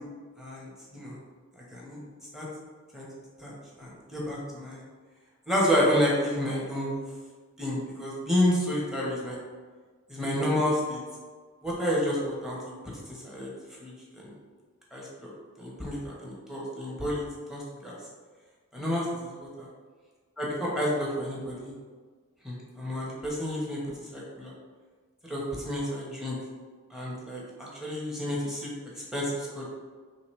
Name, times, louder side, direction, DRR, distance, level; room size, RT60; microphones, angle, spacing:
voice 1, 0.4-1.2 1.7-2.0 2.3-2.5 2.9-3.1 3.4-4.8 5.5-7.0 7.6-9.4 10.1-11.0 11.6-12.6 13.1-13.5 13.8-13.9 14.2-14.3 14.9-15.3 15.6-17.2 17.5-18.0 18.7-19.5 20.4-21.7 22.4-23.8 24.1-24.5 25.2-26.4 26.9-28.7 29.1-29.7, equal, ahead, -5 dB, 0.9 m, -30 dB
5.0 x 3.2 x 3.1 m, 1.5 s
head